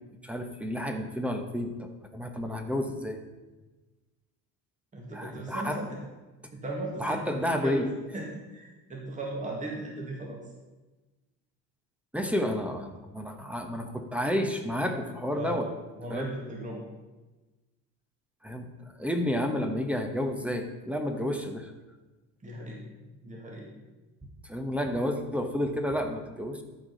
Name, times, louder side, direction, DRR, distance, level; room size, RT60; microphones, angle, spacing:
voice 1, 0.2-3.2 5.1-5.8 7.0-7.9 12.1-15.7 16.1-16.3 18.4-21.7 24.5-26.6, equal, 5° right, 5 dB, 1.1 m, -31 dB
voice 2, 4.9-6.0 6.5-7.9 8.1-10.4 15.3-15.6 16.0-16.8 22.4-23.7, right 1 dB, 20° right, -1 dB, 1.8 m, -37 dB
13.0 x 4.8 x 5.2 m, 1.2 s
cardioid pair, 105°, 35 cm